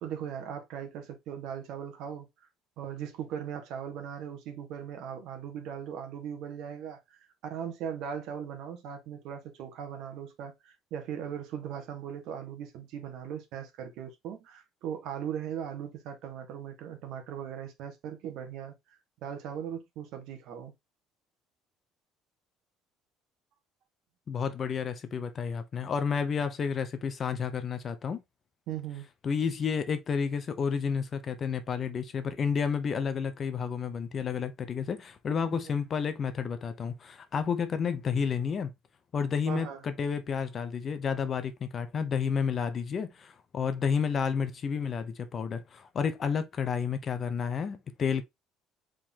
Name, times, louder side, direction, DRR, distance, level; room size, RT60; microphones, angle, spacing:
voice 1, 0.0-2.3 2.8-7.0 7.4-18.7 19.2-20.7 28.7-29.1 35.6-35.7 39.5-39.8, right 8 dB, 60° right, 1.4 m, -39 dB
voice 2, 24.3-28.2 29.2-38.7 39.1-48.2, left 6 dB, 30° left, 0.6 m, -31 dB
4.7 x 3.8 x 2.8 m
cardioid pair, 160°, 0 cm